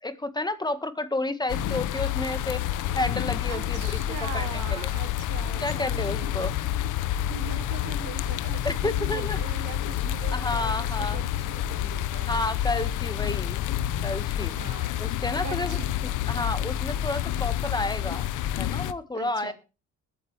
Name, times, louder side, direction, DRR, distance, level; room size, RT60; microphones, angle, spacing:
voice 1, 0.0-2.6 2.9-3.9 4.2-4.9 5.6-6.5 8.6-9.4 10.3-11.2 12.3-13.6 14.0-14.5 15.0-15.8 16.3-18.3 18.6-19.5, left 2 dB, 15° left, 11 dB, 1.6 m, -30 dB
sound 1, 1.5-18.9, left 11 dB, 85° left, 0.8 m, -29 dB
voice 2, 3.5-6.5 7.3-12.4 14.4-15.1 15.4-16.0 19.1-19.5, right 10 dB, 85° right, 6 dB, 2.4 m, -41 dB
20.5 x 9.0 x 3.3 m, 0.31 s
cardioid pair, 90°, 30 cm